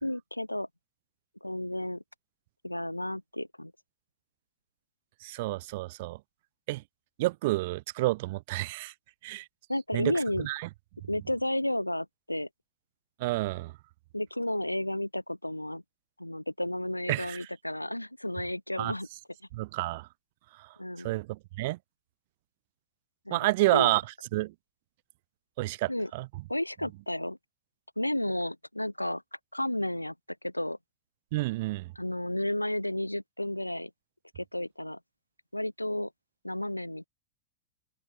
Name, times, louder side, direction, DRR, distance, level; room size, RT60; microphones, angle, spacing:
voice 1, 0.0-0.7 1.4-2.0 2.6-3.7 9.7-10.5 11.1-12.5 14.1-15.8 16.2-19.1 20.8-21.2 23.3-23.9 25.9-26.1 26.5-27.4 28.0-29.2 29.5-30.1 30.4-30.8 32.0-33.9 34.4-35.0 35.5-36.1 36.4-37.1, left 1 dB, 85° left, 0.4 m, -32 dB
voice 2, 5.2-6.2 6.7-6.8 7.2-8.9 9.2-9.5 9.9-10.7 13.2-13.7 17.1-17.5 18.8-18.9 19.5-20.1 20.6-20.7 21.0-21.8 23.3-24.0 24.3-24.5 25.6-26.3 31.3-31.9, right 20 dB, 50° right, 0.4 m, -29 dB
open air
figure-of-eight pair, 90°, 0 cm